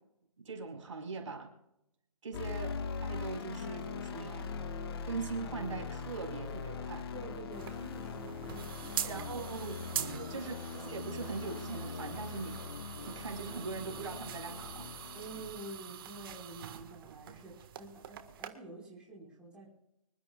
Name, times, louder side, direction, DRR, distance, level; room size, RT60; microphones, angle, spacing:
voice 1, 0.4-1.5 2.2-4.5 5.0-7.1 9.0-9.7 10.3-12.6 13.0-14.9, right 4 dB, 60° right, 2 dB, 4.8 m, -41 dB
sound 1, 2.3-15.5, left 5 dB, 45° left, 1.5 m, -41 dB
voice 2, 7.1-9.4 10.2-10.5 15.1-19.7, right 2 dB, 5° right, -6 dB, 4.8 m, -49 dB
sound 2, 7.5-18.5, right 9 dB, 40° right, 1.6 m, -44 dB
25.5 x 13.0 x 2.4 m, 0.85 s
hypercardioid pair, 150°, 18 cm